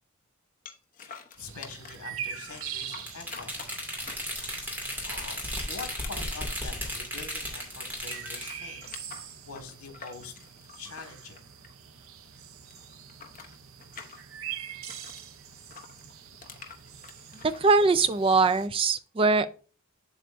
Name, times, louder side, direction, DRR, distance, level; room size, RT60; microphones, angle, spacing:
sound 1, 0.7-2.1 2.5-4.6 5.1-7.6 7.9-12.1 12.3-15.2 15.7-17.6, left 6 dB, 40° left, 1.0 m, -47 dB
voice 1, 1.0-3.8 5.0-10.3 10.8-11.4, left 4 dB, 90° left, 1.7 m, -45 dB
sound 2, 1.4-18.7, right 8 dB, 65° right, 0.8 m, -44 dB
sound 3, 3.0-8.5, equal, 10° right, 2.3 m, -35 dB
voice 2, 17.4-19.5, right 4 dB, 25° right, 0.3 m, -22 dB
7.7 x 7.7 x 2.6 m
head